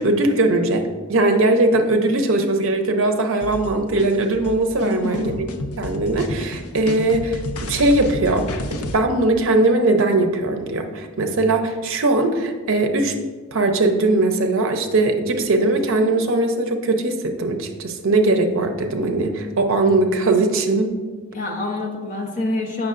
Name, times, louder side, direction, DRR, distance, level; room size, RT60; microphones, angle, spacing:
voice 1, 0.0-5.5 5.8-13.1 13.5-20.9, right 2 dB, 60° right, 5 dB, 0.6 m, -20 dB
sound 1, 3.4-9.0, left 1 dB, 90° left, 0.5 m, -31 dB
voice 2, 4.8-5.3 21.3-22.9, left 2 dB, 35° left, 0 dB, 0.9 m, -26 dB
7.5 x 5.9 x 2.5 m, 1.5 s
head